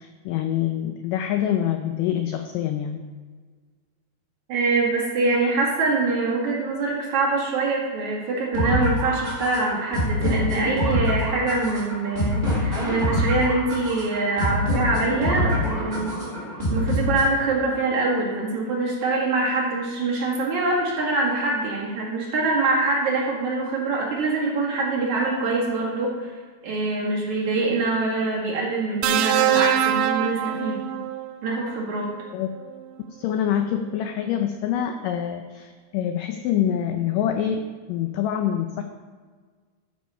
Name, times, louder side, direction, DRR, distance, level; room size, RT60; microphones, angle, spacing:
voice 1, 0.0-3.0 32.3-32.5 33.2-38.8, left 10 dB, 85° left, 6 dB, 1.9 m, -25 dB
voice 2, 4.5-16.1 16.7-26.3 26.6-30.8 31.4-32.1, right 3 dB, 55° right, -4 dB, 3.0 m, -24 dB
sound 1, 8.5-17.5, left 1 dB, 10° right, 2.3 m, -25 dB
sound 2, 29.0-31.3 32.6-32.8, right 11 dB, 85° right, 2.6 m, -23 dB
12.0 x 6.4 x 5.6 m, 1.5 s
omnidirectional pair, 4.5 m